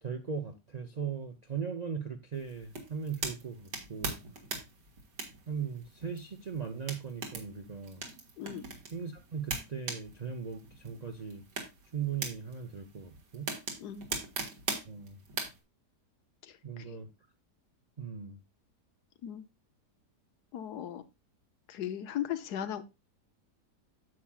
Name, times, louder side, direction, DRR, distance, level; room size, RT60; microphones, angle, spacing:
voice 1, 0.0-4.2 5.5-8.0 8.9-11.4 11.9-13.5 14.8-15.2 16.6-17.1 18.0-18.4, right 6 dB, 65° right, 0.4 m, -38 dB
sound 1, 2.3-15.6, right 3 dB, 85° right, 2.2 m, -41 dB
voice 2, 16.4-17.0 19.2-19.4 20.5-21.0 21.7-22.8, left 10 dB, 75° left, 1.3 m, -37 dB
9.3 x 7.2 x 2.3 m
omnidirectional pair, 1.8 m